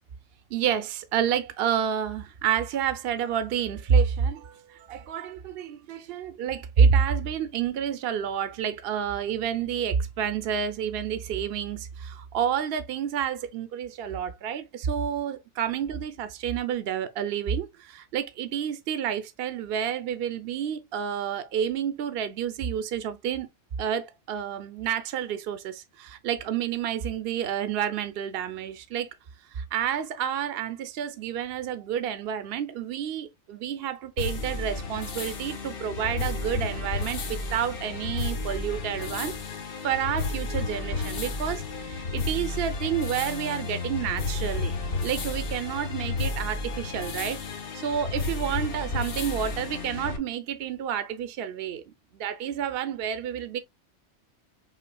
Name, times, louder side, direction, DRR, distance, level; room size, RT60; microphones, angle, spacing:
voice 1, 0.5-23.5 23.8-29.1 29.5-39.3 39.8-44.7 45.0-47.4 47.7-51.8 52.1-53.6, right 8 dB, 60° right, 0.8 m, -29 dB
sound 1, 34.2-50.2, left 3 dB, 55° left, 1.1 m, -32 dB
5.8 x 3.6 x 2.2 m
omnidirectional pair, 1.2 m